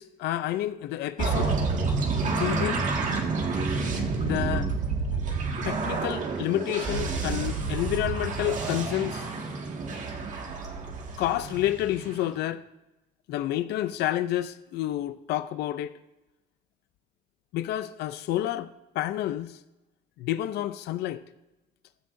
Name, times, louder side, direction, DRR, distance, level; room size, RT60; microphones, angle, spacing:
voice 1, 0.0-1.6 2.3-2.9 4.2-4.7 5.6-9.3 11.2-12.6 13.3-16.0 17.5-19.6 20.2-21.2, left 13 dB, 75° left, 0.5 m, -29 dB
sound 1, 1.2-12.3, right 4 dB, 50° right, 1.9 m, -29 dB
15.0 x 12.5 x 2.6 m
cardioid pair, 110°, 17 cm